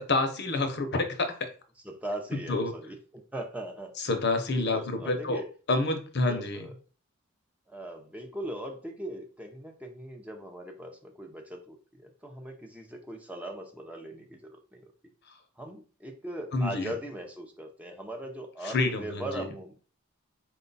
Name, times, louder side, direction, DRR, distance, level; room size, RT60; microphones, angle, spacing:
voice 1, 0.0-1.5 2.3-2.7 4.0-5.4 5.7-6.6 16.5-16.9 18.6-19.5, left 2 dB, 50° left, 6 dB, 0.7 m, -28 dB
voice 2, 1.8-3.9 4.5-5.5 6.3-6.7 7.7-14.9 15.6-19.8, right 1 dB, 5° right, 2 dB, 0.6 m, -40 dB
4.7 x 2.3 x 3.9 m, 0.38 s
head